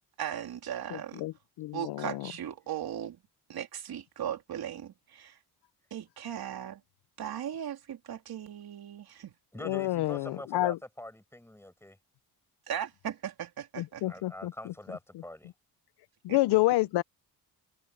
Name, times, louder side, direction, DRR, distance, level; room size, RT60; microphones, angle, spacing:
voice 1, 0.2-1.2 1.7-3.2 3.5-5.4 5.9-6.8 7.2-9.3 12.7-14.0 16.3-16.4, right 10 dB, 70° right, 3.3 m, -37 dB
voice 2, 0.9-2.3 9.6-10.8 13.8-14.7 16.2-17.0, left 18 dB, 85° left, 0.6 m, -29 dB
voice 3, 9.5-12.0 14.1-15.5, left 1 dB, 5° left, 5.9 m, -44 dB
cardioid pair, 95°, 39 cm